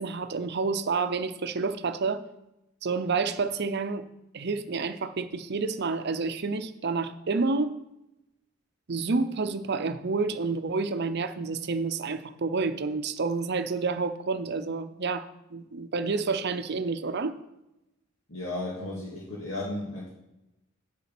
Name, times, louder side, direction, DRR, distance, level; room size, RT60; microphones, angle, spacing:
voice 1, 0.0-2.2 2.8-4.0 4.3-7.8 8.9-17.3, right 4 dB, 55° right, 11 dB, 0.7 m, -29 dB
voice 2, 18.3-20.1, left 2 dB, 85° left, -5 dB, 2.2 m, -34 dB
8.1 x 7.1 x 6.0 m, 0.93 s
head